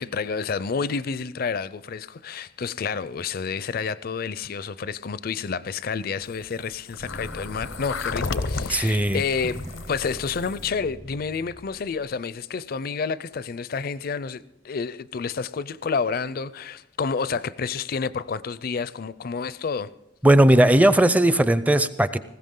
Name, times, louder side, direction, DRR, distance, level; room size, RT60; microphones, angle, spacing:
voice 1, 0.0-19.9, left 5 dB, 50° left, 0.5 m, -29 dB
sound 1, 6.2-10.7, left 4 dB, 85° left, 0.7 m, -33 dB
sound 2, 7.0-12.0, equal, 75° right, 3.5 m, -42 dB
voice 2, 8.7-9.2 20.2-22.2, right 1 dB, 10° right, 0.5 m, -17 dB
19.5 x 16.0 x 3.8 m
head